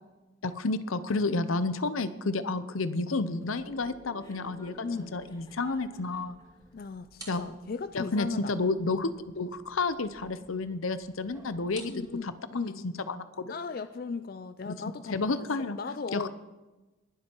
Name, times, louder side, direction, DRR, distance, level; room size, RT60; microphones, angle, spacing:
voice 1, 0.4-4.9 5.1-6.4 7.3-7.4 7.9-13.5 14.7-14.8 15.1-15.8 16.1-16.3, left 3 dB, 80° left, 13 dB, 0.8 m, -31 dB
sound 1, 2.4-6.3, right 1 dB, 50° right, 1.9 m, -54 dB
sound 2, 3.5-12.2, right 2 dB, 20° right, 2.4 m, -55 dB
Chuckle chortle, 4.2-6.4, left 1 dB, 20° left, 2.3 m, -57 dB
voice 2, 4.8-5.2 6.7-8.5 11.8-12.9 13.5-15.5 15.8-16.3, left 4 dB, 45° left, 11 dB, 0.4 m, -37 dB
20.5 x 7.7 x 4.5 m, 1.1 s
head